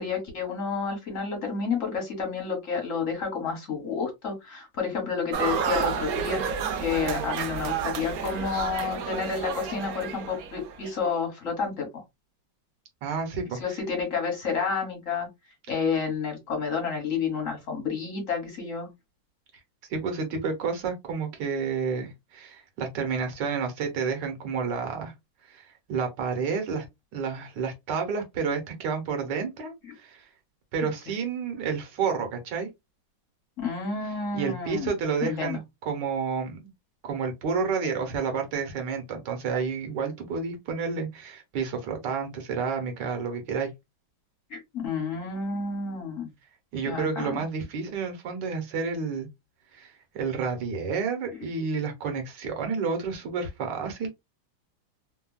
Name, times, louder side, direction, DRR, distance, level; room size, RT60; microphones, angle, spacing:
voice 1, 0.0-12.0 13.6-15.3 15.7-18.9 33.6-34.9 35.2-35.6 44.5-46.3 46.8-47.4, left 5 dB, 45° left, 1.5 m, -30 dB
sound 1, 5.3-10.9, right 6 dB, 85° right, 0.8 m, -31 dB
voice 2, 13.0-13.8 19.9-25.1 25.5-26.9 27.1-30.2 30.7-32.7 34.3-36.7 37.0-43.7 46.7-49.3 49.7-54.1, right 5 dB, 70° right, 1.4 m, -30 dB
3.3 x 2.2 x 2.2 m
omnidirectional pair, 2.2 m